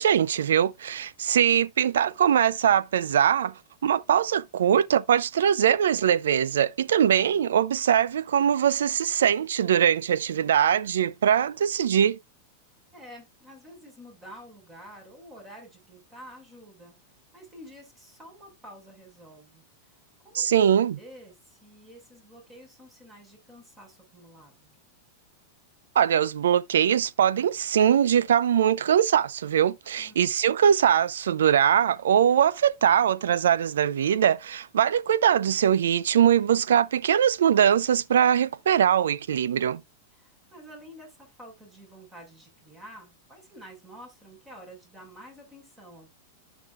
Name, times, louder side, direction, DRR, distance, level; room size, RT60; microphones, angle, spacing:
voice 1, 0.0-3.5 3.8-12.2 20.3-21.0 26.0-39.8, right 9 dB, 85° right, 0.5 m, -22 dB
voice 2, 12.9-16.9 17.3-20.0 20.2-20.6 21.0-24.7 30.0-30.3 40.1-46.1, equal, 15° right, 6.0 m, -49 dB
14.0 x 5.0 x 2.5 m
hypercardioid pair, 120°, 0 cm